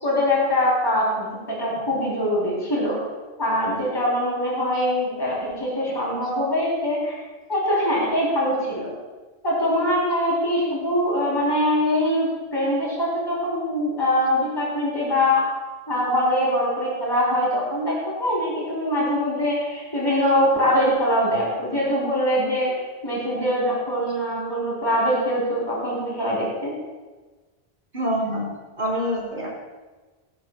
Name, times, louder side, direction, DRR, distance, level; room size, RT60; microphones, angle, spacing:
voice 1, 0.0-3.0 3.4-7.2 7.5-8.9 9.4-15.4 15.9-22.7 23.0-26.7, left 1 dB, 20° left, -6 dB, 4.0 m, -23 dB
voice 2, 27.9-28.5 28.8-29.5, equal, 50° right, -4 dB, 4.6 m, -25 dB
19.5 x 15.5 x 2.5 m, 1.3 s
omnidirectional pair, 1.1 m